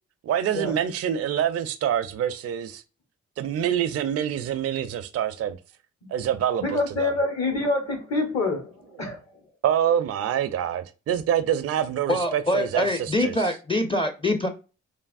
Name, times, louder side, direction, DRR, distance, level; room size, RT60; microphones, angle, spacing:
voice 1, 0.2-2.8 3.4-5.6 6.1-7.1 9.6-13.4, right 9 dB, 50° right, 0.4 m, -26 dB
voice 2, 6.6-9.2, left 2 dB, 55° left, 1.2 m, -26 dB
voice 3, 12.1-14.5, left 1 dB, 15° left, 0.5 m, -24 dB
3.3 x 2.0 x 2.4 m
supercardioid pair, 45°, 32 cm